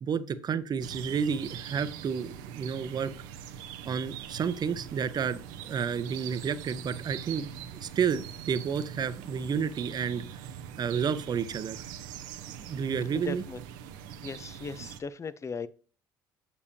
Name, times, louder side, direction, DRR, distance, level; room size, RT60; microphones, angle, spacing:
voice 1, 0.0-3.1 3.9-5.4 5.7-7.5 7.8-10.2 10.8-11.8 12.6-13.4, right 6 dB, 45° right, 0.8 m, -30 dB
sound 1, 0.8-15.0, right 9 dB, 80° right, 0.8 m, -43 dB
voice 2, 13.1-13.6 14.2-15.7, left 5 dB, 30° left, 0.6 m, -37 dB
7.1 x 6.9 x 2.8 m
hypercardioid pair, 70°, 10 cm